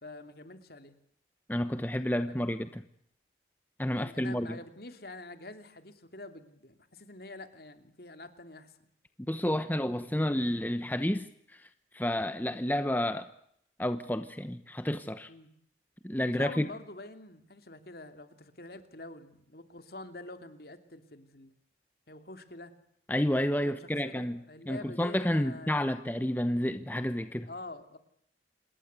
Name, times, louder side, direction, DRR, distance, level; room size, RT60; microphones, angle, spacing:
voice 1, 0.0-0.9 2.3-2.4 3.9-8.9 15.3-15.5 16.3-21.5 22.1-22.7 23.6-23.7 24.0-25.9 27.5-28.0, left 2 dB, 55° left, 2.9 m, -46 dB
voice 2, 1.5-2.8 3.8-4.6 9.2-11.7 11.9-13.3 13.8-15.3 16.0-16.7 23.1-24.4 24.7-27.5, left 1 dB, 10° left, 0.9 m, -30 dB
27.0 x 21.0 x 8.2 m
head